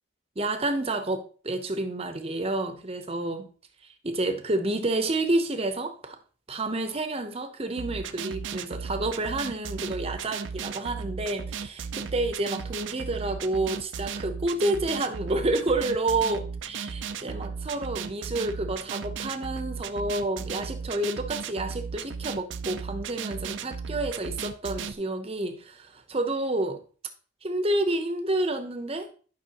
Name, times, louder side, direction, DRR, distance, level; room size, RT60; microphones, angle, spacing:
voice 1, 0.4-3.5 3.8-6.2 6.5-26.8 27.4-29.1, right 2 dB, 30° right, 0.8 m, -29 dB
sound 1, 7.8-24.9, right 6 dB, 70° right, 0.5 m, -36 dB
11.0 x 5.5 x 2.9 m
head